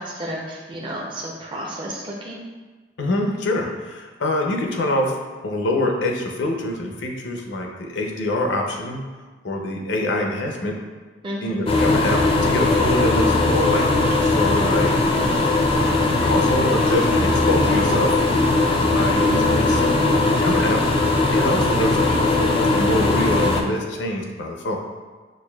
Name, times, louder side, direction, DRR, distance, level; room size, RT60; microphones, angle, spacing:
voice 1, 0.0-2.4 11.2-11.7, equal, 30° right, -3 dB, 0.5 m, -32 dB
voice 2, 3.0-5.1 5.4-9.0 9.4-10.8 11.4-15.0 15.7-18.1 18.8-20.1 20.4-20.8 21.3-24.8, left 1 dB, 80° left, 2 dB, 0.6 m, -25 dB
sound 1, 11.7-23.6, left 2 dB, 30° left, 0.4 m, -19 dB
6.1 x 2.5 x 2.3 m, 1.3 s
head